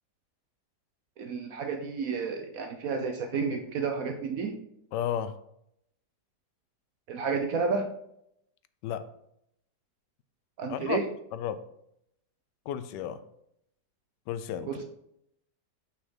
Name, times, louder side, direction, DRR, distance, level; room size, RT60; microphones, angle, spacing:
voice 1, 1.2-4.5 7.1-7.9 10.6-11.0 14.7-14.8, right 5 dB, 65° right, 6 dB, 1.0 m, -31 dB
voice 2, 4.9-5.4 8.8-9.1 10.7-11.0 11.3-11.6 12.7-13.2 14.3-14.8, left 10 dB, 85° left, 13 dB, 1.2 m, -33 dB
6.6 x 5.8 x 3.7 m, 0.76 s
omnidirectional pair, 1.8 m